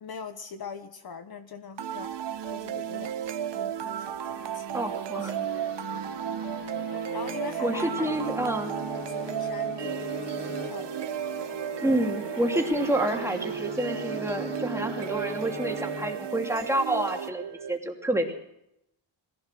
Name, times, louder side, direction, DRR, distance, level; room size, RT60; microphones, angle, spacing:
voice 1, 0.0-2.2 2.5-4.8 5.2-5.5 7.1-8.4 9.3-11.0, left 6 dB, 50° left, 9 dB, 1.3 m, -42 dB
sound 1, 1.8-17.8, right 9 dB, 55° right, 1.3 m, -34 dB
voice 2, 4.7-5.6 7.6-8.7 11.8-18.3, right 1 dB, 5° right, 2 dB, 2.9 m, -28 dB
sound 2, 5.2-16.7, left 4 dB, 85° left, 4.2 m, -41 dB
21.0 x 16.5 x 7.7 m, 0.81 s
wide cardioid pair, 140°, 49 cm